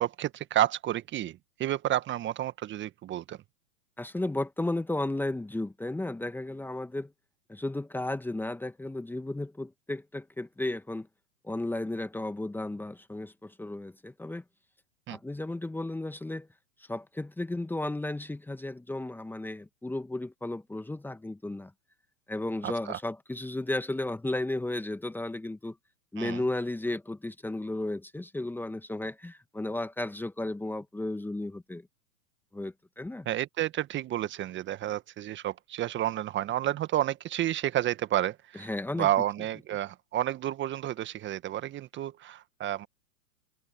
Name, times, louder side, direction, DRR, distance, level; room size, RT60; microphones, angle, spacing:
voice 1, 0.0-3.4 15.1-15.2 22.6-23.0 26.2-26.4 33.2-42.9, right 13 dB, 25° right, 1.6 m, -30 dB
voice 2, 4.0-7.1 7.5-11.1 11.4-14.4 15.1-16.5 16.9-21.7 22.3-25.7 26.1-31.8 32.5-33.3 38.6-39.1, left 2 dB, 5° left, 1.7 m, -34 dB
figure-of-eight pair, 105°, 45 cm